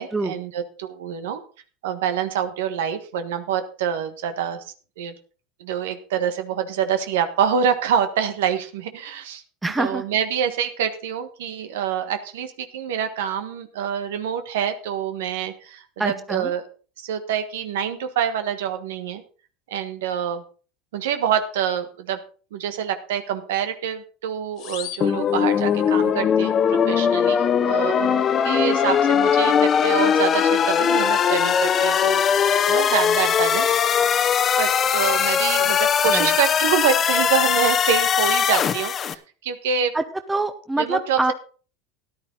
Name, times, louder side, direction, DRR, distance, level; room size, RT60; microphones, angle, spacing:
voice 1, 0.0-1.4 1.8-4.6 5.0-5.1 5.6-9.4 9.8-16.6 17.0-19.2 19.7-20.4 20.9-22.2 22.5-32.2 32.7-33.8 34.6-39.9 40.8-41.3, right 8 dB, 90° right, 9 dB, 1.4 m, -26 dB
voice 2, 9.6-10.0 16.0-16.5 36.1-36.3 39.9-40.0 40.3-41.3, right 2 dB, 10° right, 9 dB, 0.9 m, -25 dB
sound 1, 24.6-26.1, left 13 dB, 55° left, 1.9 m, -39 dB
sound 2, 25.0-39.1, left 7 dB, 30° left, 0.9 m, -20 dB
13.5 x 11.0 x 4.0 m, 0.38 s
supercardioid pair, 120°, 0 cm